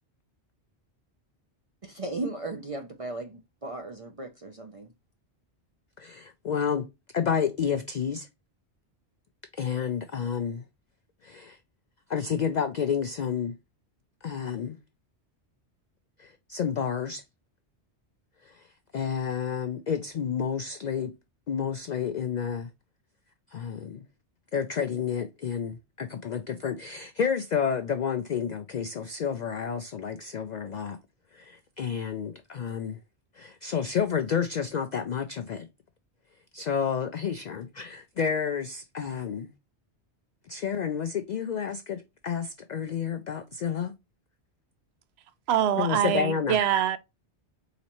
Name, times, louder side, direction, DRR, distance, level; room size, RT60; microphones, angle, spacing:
voice 1, 1.8-4.9, right 2 dB, 40° right, 0.5 m, -36 dB
voice 2, 6.0-6.9 7.1-8.3 9.6-10.6 11.2-11.6 12.1-13.5 14.2-14.8 16.2-17.2 18.9-21.1 21.5-22.7 23.5-24.0 24.5-31.0 31.3-33.0 33.4-35.7 36.5-39.5 40.5-43.9 45.8-46.6, left 7 dB, 55° left, 0.5 m, -30 dB
voice 3, 45.5-47.0, right 10 dB, 70° right, 0.8 m, -24 dB
4.1 x 3.9 x 2.9 m
omnidirectional pair, 1.2 m